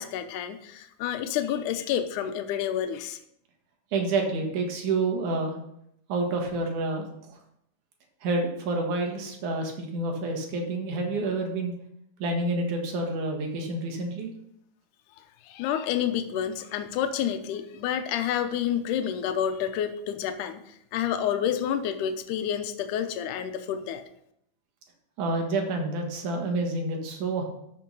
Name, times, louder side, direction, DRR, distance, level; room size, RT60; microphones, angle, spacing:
voice 1, 0.0-3.2 15.4-24.0, left 9 dB, 85° left, 8 dB, 2.3 m, -29 dB
voice 2, 3.9-5.6 6.1-7.4 8.2-11.7 12.2-14.3 25.2-27.4, right 2 dB, 75° right, 3 dB, 3.1 m, -28 dB
12.0 x 5.7 x 5.5 m, 0.75 s
omnidirectional pair, 3.6 m